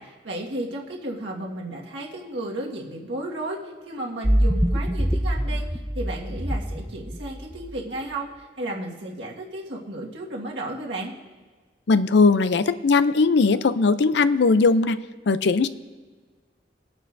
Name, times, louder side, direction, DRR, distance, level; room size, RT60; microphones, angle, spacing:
voice 1, 0.0-11.1, right 1 dB, 80° right, -2 dB, 1.7 m, -33 dB
sound 1, 4.2-7.8, equal, 5° right, 0.4 m, -24 dB
voice 2, 11.9-15.0 15.3-15.7, left 4 dB, 65° left, 13 dB, 0.5 m, -19 dB
20.5 x 9.0 x 2.6 m, 1.4 s
head